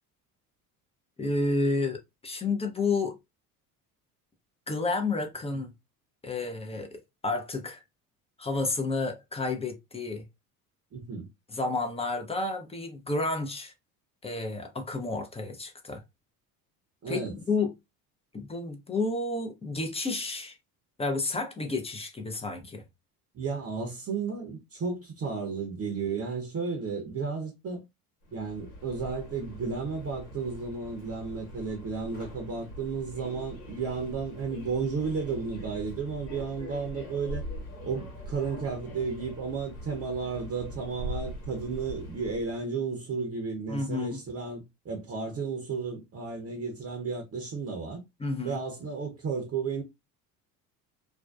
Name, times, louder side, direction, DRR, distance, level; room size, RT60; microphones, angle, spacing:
voice 1, 1.2-3.2 4.7-5.7 6.2-7.8 8.4-10.2 11.5-13.7 14.2-16.0 17.1-17.7 18.3-20.6 21.0-22.8 43.7-44.2 48.2-48.6, left 3 dB, 15° left, 0.5 m, -31 dB
voice 2, 10.9-11.3 17.0-17.3 23.3-27.8 28.3-37.4 37.8-48.0 48.4-49.8, right 5 dB, 30° right, 0.7 m, -33 dB
Subway metro underground, 28.2-42.6, equal, 80° left, 1.2 m, -42 dB
2.5 x 2.2 x 2.3 m
hypercardioid pair, 65°, 45 cm